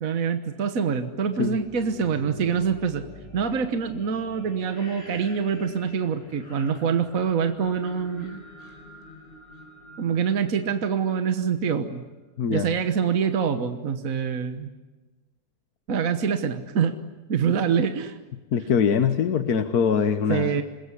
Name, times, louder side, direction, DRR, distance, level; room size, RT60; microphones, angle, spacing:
voice 1, 0.0-3.0 3.3-8.4 10.0-12.0 12.5-14.7 15.9-17.0 17.3-18.2 20.3-20.6, right 6 dB, 60° right, 8 dB, 1.6 m, -25 dB
sound 1, 1.4-11.2, left 1 dB, 40° left, 5.4 m, -45 dB
voice 2, 12.4-12.7 18.5-20.6, left 7 dB, 80° left, 9 dB, 1.6 m, -23 dB
27.0 x 21.5 x 9.9 m, 1.2 s
omnidirectional pair, 1.6 m